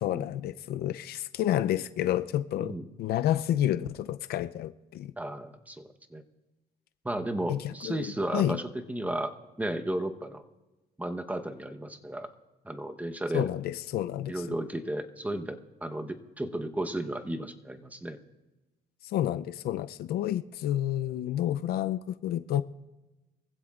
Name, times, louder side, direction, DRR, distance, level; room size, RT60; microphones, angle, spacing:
voice 1, 0.0-2.7 3.0-5.1 7.5-8.1 8.3-8.6 13.3-14.3 19.0-22.6, left 12 dB, 70° left, 0.5 m, -29 dB
voice 2, 5.2-6.2 7.0-10.4 11.0-12.3 12.6-13.5 14.3-18.2, right 1 dB, 10° right, 1.0 m, -34 dB
23.5 x 15.5 x 2.4 m
cardioid pair, 110°, 17 cm